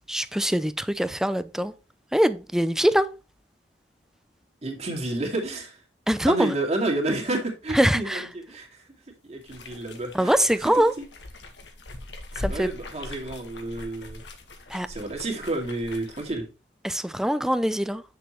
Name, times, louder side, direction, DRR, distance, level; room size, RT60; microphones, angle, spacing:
voice 1, 0.1-1.7 2.1-3.1 6.1-6.5 7.7-8.2 10.1-10.9 12.4-12.7 14.7-14.9 16.8-18.0, equal, 5° right, 0.5 m, -23 dB
voice 2, 4.6-5.8 6.3-8.9 9.2-10.4 12.5-14.2 14.9-16.5, right 2 dB, 40° right, 2.4 m, -30 dB
sound 1, 9.4-16.3, left 2 dB, 90° left, 1.6 m, -40 dB
8.3 x 6.9 x 3.2 m
head